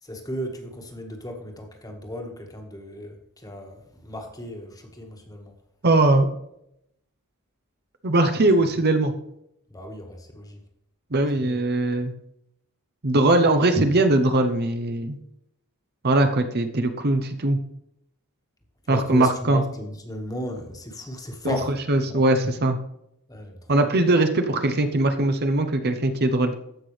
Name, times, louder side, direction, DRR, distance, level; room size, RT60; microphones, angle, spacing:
voice 1, 0.0-5.5 9.7-10.6 11.3-11.6 18.8-21.7 22.0-22.2 23.3-23.8, left 1 dB, 15° left, 2 dB, 1.7 m, -35 dB
voice 2, 5.8-6.3 8.0-9.1 11.1-12.1 13.0-15.2 16.0-17.6 18.9-19.6 21.4-21.5 21.9-22.8 23.7-26.5, right 2 dB, 45° right, 7 dB, 0.9 m, -20 dB
14.5 x 6.0 x 3.3 m, 0.77 s
head